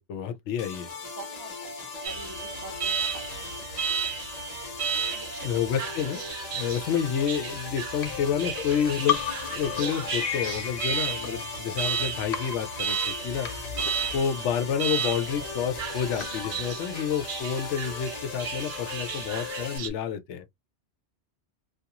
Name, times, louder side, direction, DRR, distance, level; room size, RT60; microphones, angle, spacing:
voice 1, 0.1-0.9 5.4-6.2 6.5-9.2 9.5-13.5 14.1-20.4, left 8 dB, 85° left, 0.9 m, -29 dB
sound 1, 0.6-19.8, left 3 dB, 40° left, 0.8 m, -39 dB
voice 2, 0.6-3.6 5.1-5.6 6.1-6.3 13.9-14.1, right 3 dB, 20° right, 0.6 m, -46 dB
Alarm, 2.0-19.9, right 7 dB, 65° right, 0.9 m, -34 dB
sound 2, 8.0-12.0 12.3-16.7, left 8 dB, 55° left, 0.4 m, -35 dB
2.4 x 2.3 x 2.8 m
omnidirectional pair, 1.2 m